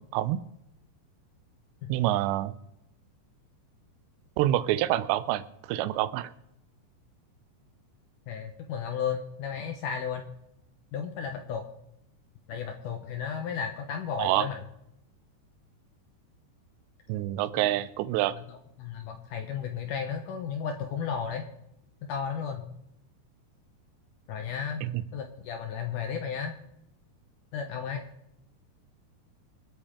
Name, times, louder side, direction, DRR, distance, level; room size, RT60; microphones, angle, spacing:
voice 1, 1.9-2.5 4.4-5.4 5.7-6.3 14.2-14.5 17.1-18.3 24.8-25.0, right 14 dB, 85° right, 14 dB, 2.8 m, -26 dB
voice 2, 8.3-10.3 10.9-11.7 12.5-14.6 17.6-17.7 18.4-21.4 22.0-22.7 24.3-24.9 25.1-26.5 27.5-28.0, left 7 dB, 70° left, 5 dB, 2.0 m, -34 dB
25.0 x 8.5 x 3.7 m, 0.79 s
omnidirectional pair, 5.0 m